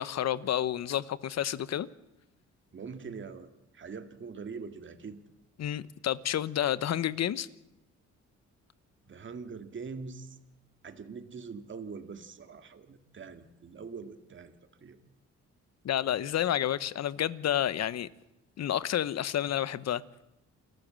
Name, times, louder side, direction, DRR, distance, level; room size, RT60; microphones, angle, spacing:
voice 1, 0.0-1.9 5.6-7.5 15.8-18.1 18.6-20.0, left 11 dB, 60° left, 1.0 m, -30 dB
voice 2, 2.7-5.2 9.1-10.4 10.8-14.5 14.8-15.0, right 5 dB, 40° right, 1.9 m, -43 dB
28.5 x 13.5 x 7.6 m
cardioid pair, 90°, 30 cm